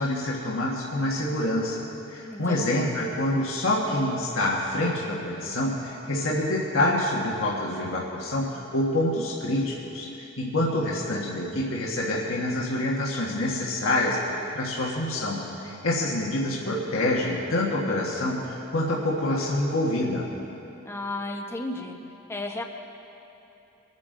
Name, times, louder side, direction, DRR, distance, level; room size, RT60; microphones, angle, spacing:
voice 1, 0.0-1.8 2.1-20.3, left 1 dB, 65° left, -4 dB, 1.5 m, -26 dB
voice 2, 2.3-2.8 20.8-22.0 22.3-22.6, left 2 dB, 10° left, 2 dB, 1.0 m, -33 dB
25.0 x 9.7 x 3.8 m, 2.9 s
head